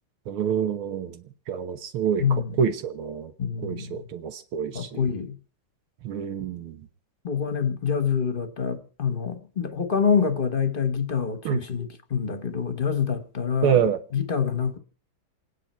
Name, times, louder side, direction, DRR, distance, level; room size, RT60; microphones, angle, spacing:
voice 1, 0.3-1.2 1.5-3.3 3.6-5.1 6.0-6.8 11.5-11.6 13.6-14.0, right 8 dB, 85° right, 2.1 m, -27 dB
voice 2, 2.2-2.6 3.4-4.1 4.7-5.4 7.2-13.8 14.1-14.8, left 6 dB, 30° left, 1.1 m, -26 dB
27.5 x 9.9 x 4.4 m
omnidirectional pair, 2.3 m